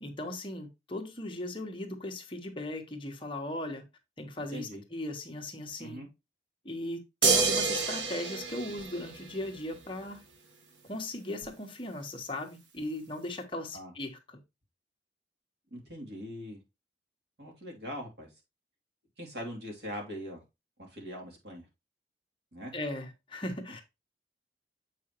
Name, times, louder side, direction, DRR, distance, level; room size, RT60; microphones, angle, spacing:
voice 1, 0.0-3.8 4.2-6.0 6.6-10.2 10.8-14.4 22.7-23.8, left 1 dB, 30° left, 1.3 m, -38 dB
voice 2, 4.5-4.8 5.8-6.1 13.7-13.9 15.7-16.6 17.4-18.3 19.2-20.4 20.8-21.7 22.5-22.7, equal, 65° right, 2.9 m, -41 dB
sound 1, 7.2-9.7 11.4-11.5, right 4 dB, 85° right, 1.2 m, -28 dB
7.7 x 5.5 x 3.0 m
head